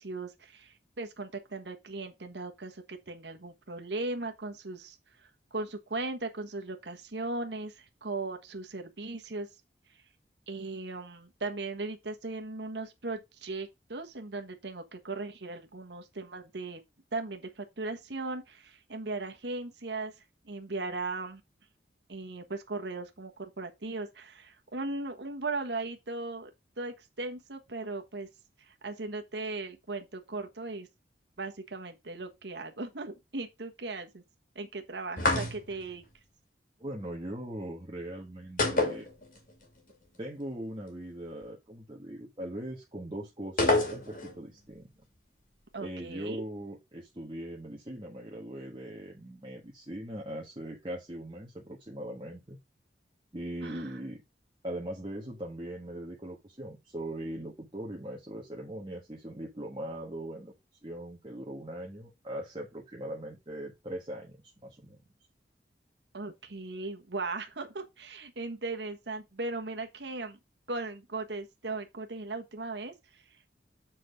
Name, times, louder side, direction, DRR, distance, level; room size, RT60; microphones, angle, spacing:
voice 1, 0.0-9.5 10.5-16.8 17.1-20.1 20.4-21.4 22.1-26.5 26.8-28.3 28.6-30.9 31.4-34.2 34.5-36.0 45.7-46.4 53.6-54.0 66.1-70.4 70.7-73.2, right 3 dB, 75° right, 1.3 m, -38 dB
sound 1, 35.2-35.9 38.6-39.6 39.9-40.0 43.6-44.4, left 2 dB, 45° left, 2.2 m, -27 dB
voice 2, 36.8-39.1 40.2-44.9 45.8-52.6 53.3-54.2 54.6-60.5 60.8-65.0, right 1 dB, 25° right, 1.4 m, -40 dB
7.6 x 4.2 x 5.0 m
head